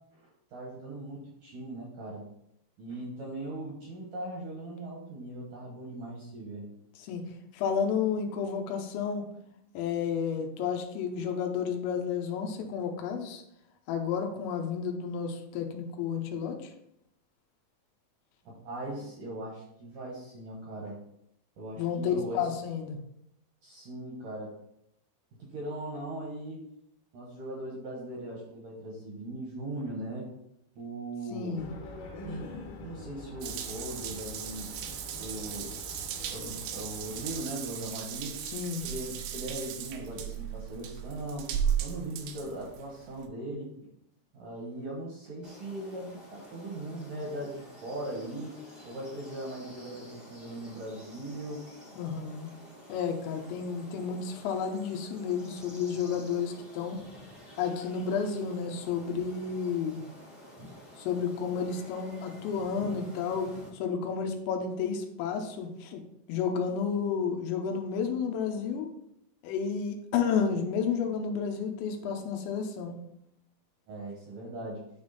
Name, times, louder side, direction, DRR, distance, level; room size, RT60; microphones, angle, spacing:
voice 1, 0.5-2.3 2.8-6.7 18.5-21.0 21.6-22.5 23.6-24.6 25.4-26.6 27.1-30.3 30.8-31.7 32.2-32.5 32.8-34.7 35.2-35.8 36.3-38.4 38.7-41.5 41.8-43.7 44.3-48.6 48.9-51.6 73.9-74.9, right 1 dB, 70° right, -3 dB, 2.1 m, -39 dB
voice 2, 7.5-9.3 9.7-13.4 13.9-16.7 21.8-23.0 31.3-31.7 38.5-38.9 52.0-52.5 52.9-57.0 57.6-60.0 61.0-66.0 66.3-68.9 69.4-73.0, left 6 dB, 85° left, 4 dB, 3.1 m, -31 dB
sound 1, 31.6-37.4, left 2 dB, 65° left, 3.1 m, -45 dB
Water tap faucet / Bathtub (filling or washing) / Drip, 33.4-43.3, right 9 dB, 85° right, 2.8 m, -36 dB
sound 2, 45.4-63.7, equal, 45° right, 0.5 m, -50 dB
9.8 x 3.5 x 4.0 m, 0.76 s
omnidirectional pair, 5.2 m